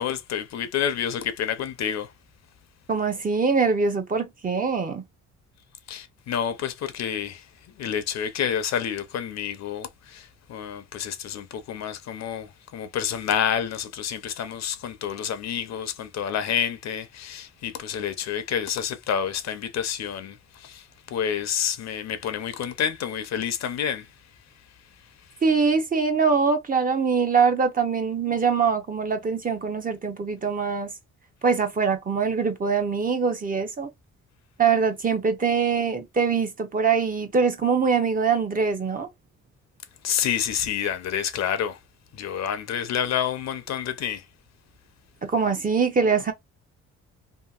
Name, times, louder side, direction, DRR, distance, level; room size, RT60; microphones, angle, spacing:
voice 1, 0.0-2.1 5.9-25.4 40.0-41.8 42.1-44.3, left 8 dB, 60° left, 0.6 m, -29 dB
voice 2, 2.9-5.0 25.4-30.9 31.4-33.9 34.6-39.1 45.2-46.3, right 5 dB, 30° right, 0.7 m, -23 dB
2.8 x 2.5 x 2.4 m
cardioid pair, 90°, 30 cm